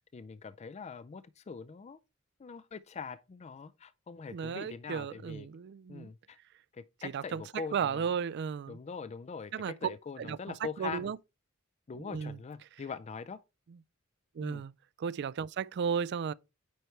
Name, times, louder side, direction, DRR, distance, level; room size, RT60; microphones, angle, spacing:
voice 1, 0.1-2.0 2.4-5.5 5.9-6.4 6.7-8.2 8.7-11.1 11.9-13.4 14.4-14.7, left 5 dB, 30° left, 0.3 m, -42 dB
voice 2, 4.3-6.1 7.1-7.4 7.7-8.8 9.5-9.7 10.2-10.4 10.8-11.2 12.1-12.4 14.4-14.7 15.0-16.3, right 6 dB, 55° right, 0.3 m, -34 dB
9.2 x 3.3 x 4.4 m
head